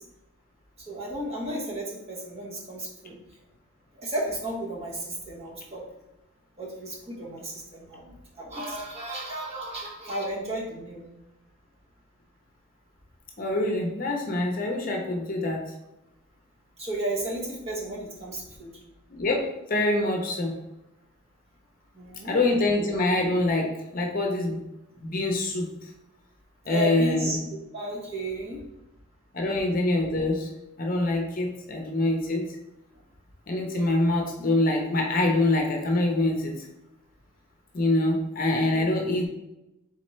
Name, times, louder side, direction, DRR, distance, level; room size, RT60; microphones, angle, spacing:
voice 1, 0.9-3.2 3.9-5.8 6.6-11.0 16.8-18.7 21.9-22.4 26.7-27.4 27.7-28.6 38.7-38.9, right 1 dB, 30° right, -5 dB, 1.2 m, -33 dB
voice 2, 13.4-15.6 19.1-20.5 22.2-24.6 25.0-25.7 26.7-27.3 29.3-30.5 30.8-32.5 33.5-36.7 37.7-39.3, left 2 dB, 40° left, 1 dB, 0.7 m, -25 dB
4.2 x 3.7 x 3.2 m, 0.92 s
head